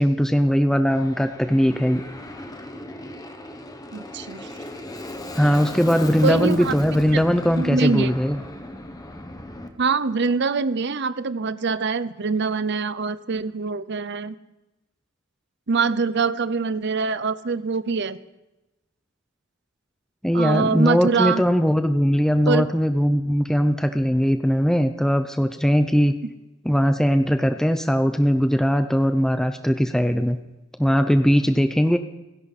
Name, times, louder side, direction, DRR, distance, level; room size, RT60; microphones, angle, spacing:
voice 1, 0.0-2.0 5.3-8.4 20.2-26.1 26.6-30.4 30.8-32.0, equal, 5° left, 7 dB, 0.6 m, -20 dB
Aircraft, 0.9-9.7, left 1 dB, 20° left, 1.2 m, -36 dB
voice 2, 3.9-4.5 6.2-6.7 7.1-7.2 7.6-8.1 9.8-14.3 15.7-18.2 20.3-21.4 22.5-22.6, right 4 dB, 60° right, 14 dB, 0.7 m, -24 dB
29.5 x 11.0 x 4.3 m, 1.0 s
head